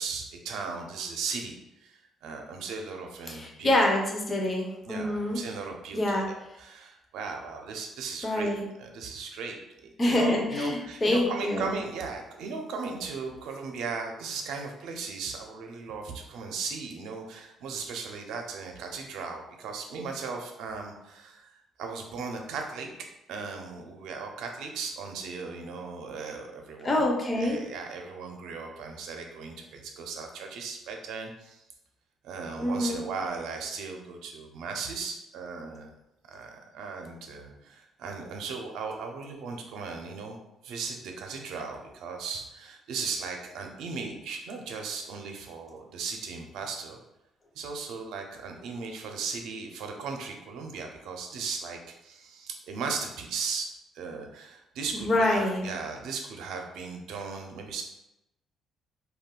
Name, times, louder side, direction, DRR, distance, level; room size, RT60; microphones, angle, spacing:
voice 1, 0.0-3.7 4.9-8.5 8.8-9.6 9.8-21.5 21.8-22.9 23.3-27.1 27.3-31.6 32.2-35.9 36.3-40.4 40.6-47.0 47.5-53.7 53.9-57.8, right 5 dB, 80° right, 3 dB, 0.5 m, -37 dB
voice 2, 3.3-5.4 5.9-6.3 8.2-8.6 10.0-11.7 26.8-27.6 32.6-33.0 54.9-55.7, left 1 dB, 20° left, 0 dB, 0.4 m, -26 dB
2.4 x 2.2 x 3.6 m, 0.89 s
cardioid pair, 150°, 0 cm